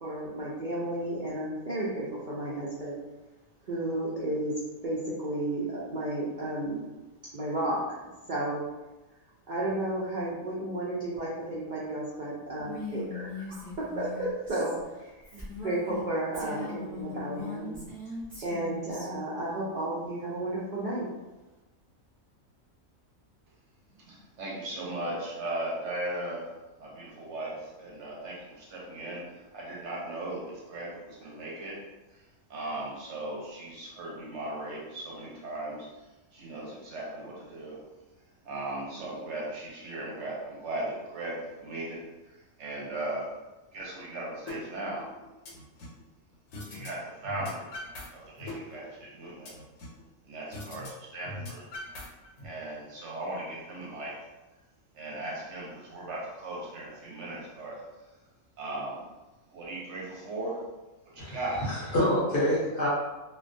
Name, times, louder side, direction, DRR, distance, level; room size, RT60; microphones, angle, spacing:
voice 1, 0.0-3.0 3.7-4.5 4.8-6.8 7.3-8.0 8.3-8.6 9.5-14.8 15.2-17.8 18.4-21.1, right 1 dB, 85° right, -7 dB, 0.4 m, -33 dB
Female speech woman speaking, 12.6-16.0 16.3-19.1, left 3 dB, 10° right, 0.5 m, -40 dB
voice 2, 24.0-31.8 32.1-32.2 32.5-35.9 36.3-37.8 38.4-43.4 43.7-45.1 46.7-47.8 48.1-49.5 50.3-51.7 52.4-54.2 54.9-57.8 58.6-59.0 59.5-60.6 61.1-61.7, right 1 dB, 65° right, -4 dB, 0.8 m, -37 dB
sound 1, 44.5-44.6 45.0-46.0 46.5-46.9 47.2-48.1 48.4-50.0 50.5-50.9 51.2-52.5, left 1 dB, 75° left, 1.0 m, -41 dB
voice 3, 61.6-62.9, left 1 dB, 55° left, -7 dB, 0.7 m, -26 dB
2.3 x 2.2 x 2.5 m, 1.1 s
omnidirectional pair, 1.4 m